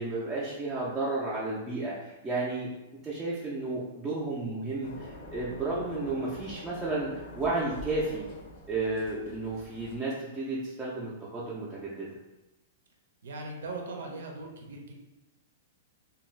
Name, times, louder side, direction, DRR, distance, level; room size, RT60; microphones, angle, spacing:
voice 1, 0.0-2.7 3.0-8.3 8.7-12.1, right 2 dB, 10° right, -8 dB, 0.4 m, -32 dB
sound 1, 4.8-10.0, left 2 dB, 55° left, 0.5 m, -45 dB
voice 2, 13.2-14.9, right 2 dB, 80° right, 1 dB, 0.6 m, -39 dB
2.6 x 2.3 x 3.1 m, 0.99 s
hypercardioid pair, 165°, 0 cm